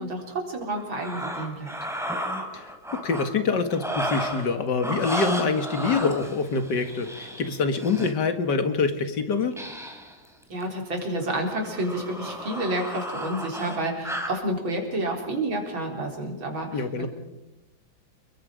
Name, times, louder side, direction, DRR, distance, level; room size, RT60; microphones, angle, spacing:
voice 1, 0.0-1.7 10.5-17.1, right 1 dB, 90° right, 1 dB, 4.9 m, -30 dB
sound 1, 0.8-3.2 3.7-4.5 4.8-8.1 9.5-10.1 10.4-10.7 11.2-14.4, equal, ahead, 3.0 m, -33 dB
voice 2, 2.5-9.5 16.7-17.1, left 4 dB, 60° left, 8 dB, 2.4 m, -25 dB
29.5 x 21.5 x 5.2 m, 0.98 s
omnidirectional pair, 2.1 m